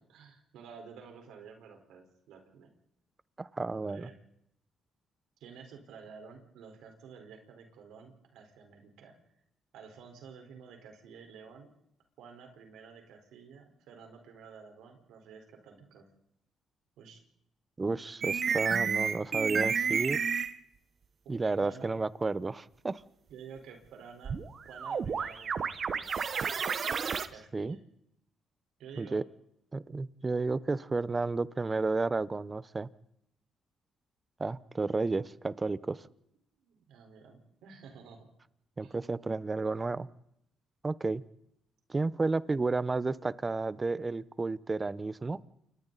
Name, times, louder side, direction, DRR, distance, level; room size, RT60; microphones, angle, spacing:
voice 1, 0.0-2.7 3.7-4.2 5.4-9.4 9.7-11.7 12.2-16.1 17.0-17.2 21.2-21.3 21.6-21.9 23.3-24.4 24.7-26.1 27.3-27.8 28.8-29.2 36.6-38.3 38.8-39.0, right 6 dB, 85° right, 4 dB, 4.5 m, -51 dB
voice 2, 3.4-4.1 17.8-20.2 21.3-23.0 27.5-27.8 29.0-29.2 29.7-32.9 34.4-36.0 38.8-40.1 40.8-41.2 41.9-45.4, right 3 dB, 25° right, 17 dB, 0.9 m, -32 dB
sound 1, 18.2-20.6 24.3-27.3, right 6 dB, 50° right, 1.2 m, -31 dB
29.0 x 24.5 x 4.1 m, 0.77 s
cardioid pair, 90°, 0 cm